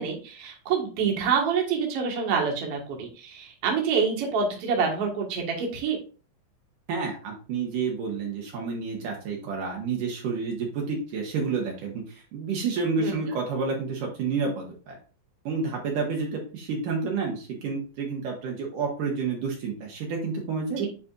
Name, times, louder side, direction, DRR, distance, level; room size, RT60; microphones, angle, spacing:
voice 1, 0.0-6.0 13.0-13.2 20.8-20.9, right 6 dB, 50° right, 0 dB, 2.2 m, -27 dB
voice 2, 6.9-15.0 15.5-20.9, right 4 dB, 70° right, 0 dB, 2.6 m, -30 dB
9.7 x 4.3 x 2.5 m, 0.37 s
omnidirectional pair, 4.2 m